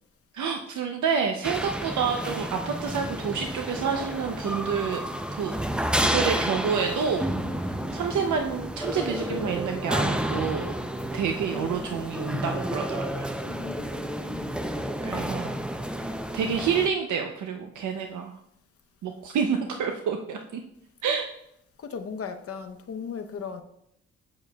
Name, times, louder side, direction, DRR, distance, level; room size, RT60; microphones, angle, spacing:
voice 1, 0.3-5.0 5.4-5.6 6.0-7.2 7.6-10.7 11.1-13.3 15.0-15.5 16.3-18.3 19.0-20.6 21.0-21.3, right 6 dB, 85° right, 0.6 m, -28 dB
sound 1, 1.4-16.9, equal, 5° right, 0.5 m, -30 dB
voice 2, 13.5-14.6 21.8-23.6, left 6 dB, 50° left, 0.8 m, -37 dB
8.5 x 6.9 x 2.3 m
cardioid pair, 85°, 29 cm